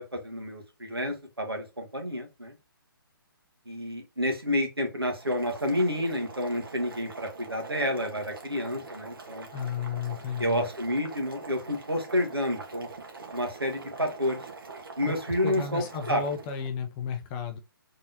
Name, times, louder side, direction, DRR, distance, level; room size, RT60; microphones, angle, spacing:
voice 1, 0.0-2.5 3.6-9.5 10.4-12.9 13.3-14.4 15.0-16.2, left 1 dB, 90° right, 1.6 m, -29 dB
Boiling, 5.1-16.7, right 4 dB, 65° right, 1.4 m, -44 dB
voice 2, 9.5-10.7 15.1-15.2 15.4-17.6, left 6 dB, 20° left, 0.6 m, -33 dB
4.0 x 3.7 x 2.7 m
figure-of-eight pair, 135°, 12 cm